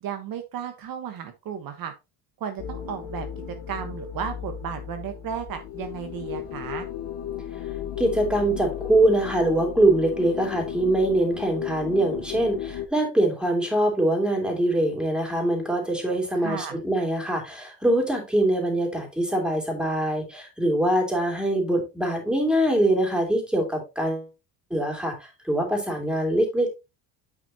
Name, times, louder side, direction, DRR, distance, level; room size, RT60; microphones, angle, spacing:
voice 1, 0.0-1.9 2.4-3.3 3.7-6.9 16.4-16.8, right 8 dB, 55° right, 6 dB, 1.3 m, -34 dB
sound 1, 2.6-12.9, left 10 dB, 80° left, 1.6 m, -34 dB
voice 2, 8.0-24.3 24.7-25.1 25.4-26.7, right 1 dB, ahead, 1 dB, 3.0 m, -23 dB
9.2 x 6.0 x 2.9 m, 0.25 s
cardioid pair, 130°, 42 cm